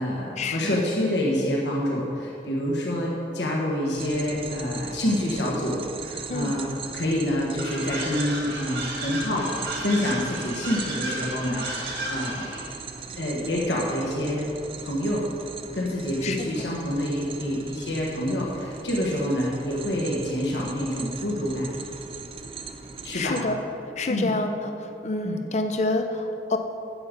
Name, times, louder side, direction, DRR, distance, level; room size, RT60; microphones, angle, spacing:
voice 1, 0.0-6.6 6.9-14.5 14.8-15.2 15.7-21.7 23.0-23.4 24.1-24.3 25.2-25.4, left 1 dB, 85° left, -3 dB, 1.4 m, -27 dB
sound 1, 4.0-23.4, right 5 dB, 30° right, 0.4 m, -40 dB
sound 2, 7.6-12.7, right 2 dB, 60° right, 2.3 m, -33 dB
voice 2, 23.1-23.6 24.0-26.6, left 2 dB, 40° left, 6 dB, 0.5 m, -27 dB
9.6 x 8.2 x 5.2 m, 2.8 s
head